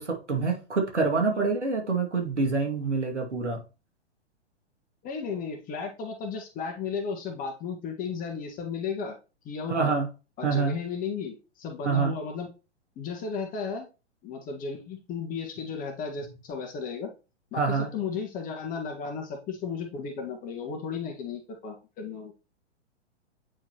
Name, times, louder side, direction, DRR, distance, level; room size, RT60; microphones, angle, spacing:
voice 1, 0.0-3.6 9.7-10.1 10.4-10.8 11.8-12.1 17.6-17.9, right 4 dB, 80° right, 2.3 m, -26 dB
voice 2, 5.0-9.2 9.4-9.9 10.4-12.5 12.9-13.9 14.2-17.1 17.5-22.3, left 5 dB, 25° left, 1.7 m, -34 dB
8.8 x 4.5 x 2.9 m
figure-of-eight pair, 110°, 34 cm